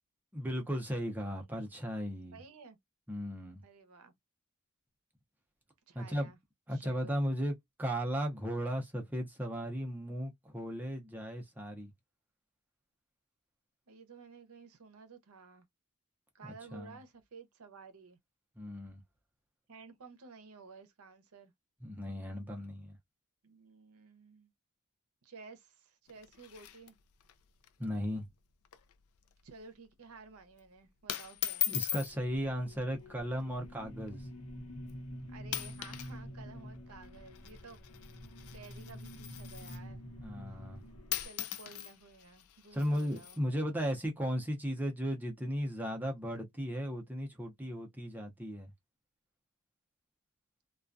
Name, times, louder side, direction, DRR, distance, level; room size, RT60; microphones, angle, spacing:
voice 1, 0.3-2.4 3.1-3.6 5.9-6.3 6.7-11.9 16.4-17.0 18.6-19.0 21.8-23.0 27.8-28.3 31.7-34.3 40.2-40.8 42.7-48.7, equal, 10° right, 0.5 m, -36 dB
voice 2, 2.3-2.8 3.6-4.1 5.9-6.4 6.7-7.2 13.9-15.7 16.3-18.2 19.7-21.5 23.4-24.5 25.2-27.0 29.4-31.7 35.3-37.8 38.5-40.0 41.2-43.4, right 4 dB, 75° right, 0.6 m, -53 dB
sound 1, 26.1-27.3 27.6-27.7 28.0-28.3 28.6-29.0 29.3-29.6 30.3-30.6 31.1-32.1 33.1-33.4 34.1-34.2 34.9-35.1 35.4-36.2 36.4-39.9 40.8-40.9 41.1-43.4, left 11 dB, 70° left, 0.4 m, -40 dB
sound 2, 32.0-41.3, equal, 90° left, 0.8 m, -48 dB
2.3 x 2.2 x 2.5 m
head